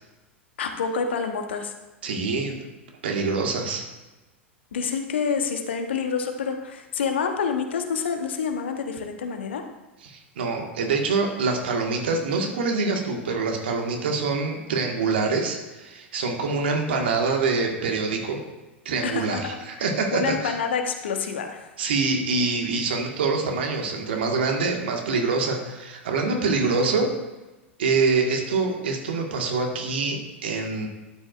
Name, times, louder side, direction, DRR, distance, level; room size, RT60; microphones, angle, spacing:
voice 1, 0.6-1.7 4.7-9.6 19.0-19.4 20.1-21.7, left 6 dB, 65° left, 5 dB, 1.1 m, -27 dB
voice 2, 2.0-2.6 3.0-3.8 10.0-18.4 18.9-20.6 21.8-27.1 27.8-30.9, right 4 dB, 60° right, 2 dB, 1.7 m, -25 dB
12.0 x 9.0 x 2.5 m, 1.1 s
figure-of-eight pair, 90°, 6 cm